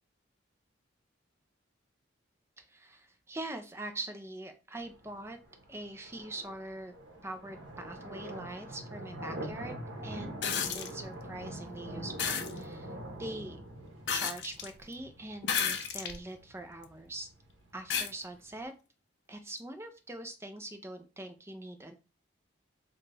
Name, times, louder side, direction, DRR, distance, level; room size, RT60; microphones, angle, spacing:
voice 1, 2.6-5.4 5.7-6.9 7.2-9.8 10.0-13.6 14.1-17.3 17.7-18.7 19.3-21.9, right 2 dB, 15° right, 7 dB, 0.4 m, -43 dB
sound 1, 4.7-18.7, right 1 dB, 75° right, 0.8 m, -45 dB
sound 2, 10.4-10.9 12.2-12.5 14.1-14.7 15.4-16.2 16.8-16.9 17.9-18.1 19.6-19.7, left 7 dB, 60° left, 0.4 m, -32 dB
3.8 x 2.2 x 3.2 m, 0.32 s
head